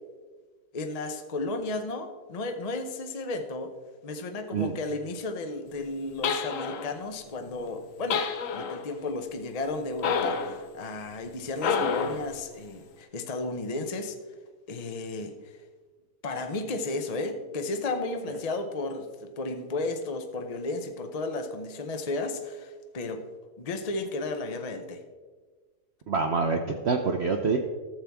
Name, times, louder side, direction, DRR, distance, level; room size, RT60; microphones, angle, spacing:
voice 1, 0.7-3.7 4.0-14.2 14.7-15.6 16.2-23.2 23.6-25.0, left 2 dB, 40° left, 5 dB, 0.5 m, -33 dB
sound 1, 6.2-7.0 8.1-8.9 10.0-10.6 11.6-12.3, left 5 dB, 60° left, 1.0 m, -28 dB
voice 2, 26.1-27.6, right 4 dB, 60° right, 4 dB, 0.7 m, -26 dB
13.5 x 7.3 x 3.5 m, 1.4 s
omnidirectional pair, 1.7 m